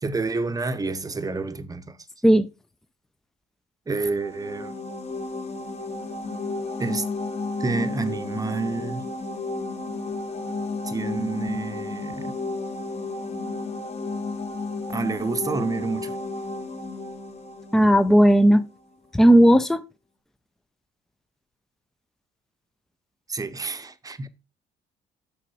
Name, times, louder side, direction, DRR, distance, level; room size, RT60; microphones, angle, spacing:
voice 1, 0.0-2.0 3.9-4.8 6.8-7.1 7.6-9.1 10.8-12.4 14.9-16.2 23.3-24.3, right 3 dB, 20° right, 0.9 m, -29 dB
sound 1, 3.9-18.6, left 3 dB, 40° left, 1.7 m, -33 dB
voice 2, 17.7-18.6 19.1-19.8, equal, 5° left, 0.6 m, -15 dB
6.7 x 5.1 x 4.8 m
supercardioid pair, 70°, 16 cm